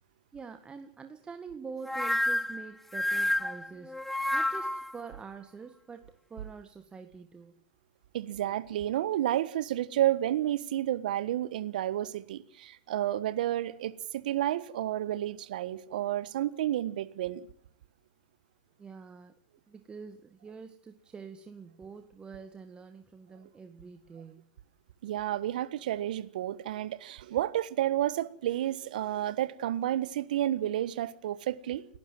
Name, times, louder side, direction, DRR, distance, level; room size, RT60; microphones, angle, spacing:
voice 1, 0.3-7.5 18.8-19.3 19.7-24.4, right 5 dB, 20° right, 1.8 m, -46 dB
sound 1, 1.8-4.9, left 1 dB, 5° left, 0.9 m, -30 dB
voice 2, 8.1-17.5 25.0-31.9, right 12 dB, 70° right, 1.4 m, -31 dB
29.5 x 11.5 x 7.8 m
hypercardioid pair, 95°, 5 cm